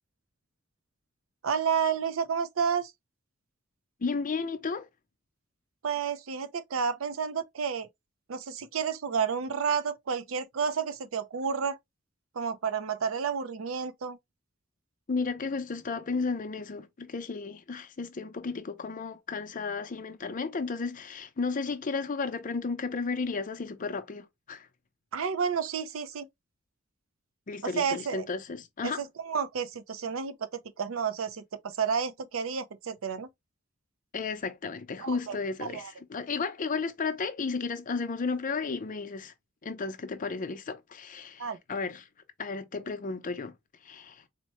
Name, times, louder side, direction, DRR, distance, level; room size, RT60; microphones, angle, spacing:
voice 1, 1.4-2.9 5.8-7.9 8.3-11.8 12.3-14.2 25.1-26.3 27.6-28.2 28.8-30.5 30.8-33.3 35.0-35.3 35.6-35.9 41.4-41.6, right 6 dB, 85° right, 0.5 m, -31 dB
voice 2, 4.0-4.9 15.1-24.7 27.5-29.0 34.1-35.8 36.1-39.3 39.6-42.0 42.4-43.5 43.8-44.2, left 4 dB, 40° left, 0.5 m, -33 dB
4.2 x 2.1 x 2.9 m
head